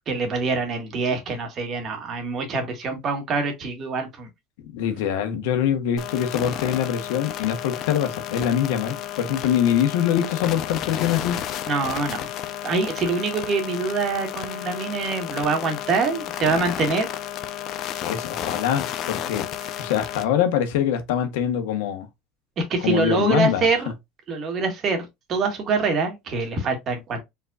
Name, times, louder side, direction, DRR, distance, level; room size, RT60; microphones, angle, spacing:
voice 1, 0.1-4.3 11.7-12.3 12.6-17.1 22.7-23.9 24.3-27.2, right 4 dB, 40° right, 1.8 m, -25 dB
voice 2, 4.7-11.4 18.0-19.4 19.8-22.1 22.8-23.7, left 9 dB, 85° left, 1.3 m, -24 dB
sound 1, 6.0-20.2, left 11 dB, 50° left, 0.7 m, -32 dB
4.5 x 4.0 x 2.5 m
supercardioid pair, 125°, 0 cm